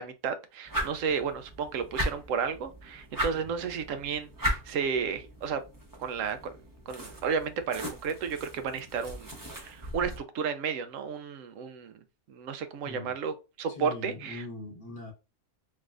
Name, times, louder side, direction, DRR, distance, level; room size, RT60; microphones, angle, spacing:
voice 1, 0.0-5.6 6.0-6.5 6.9-9.3 9.6-11.9 12.3-14.4, right 6 dB, 90° right, 1.0 m, -32 dB
sound 1, 0.7-10.2, equal, 20° right, 0.6 m, -37 dB
voice 2, 13.7-15.1, left 2 dB, 45° left, 1.1 m, -41 dB
3.4 x 3.2 x 2.4 m
omnidirectional pair, 1.3 m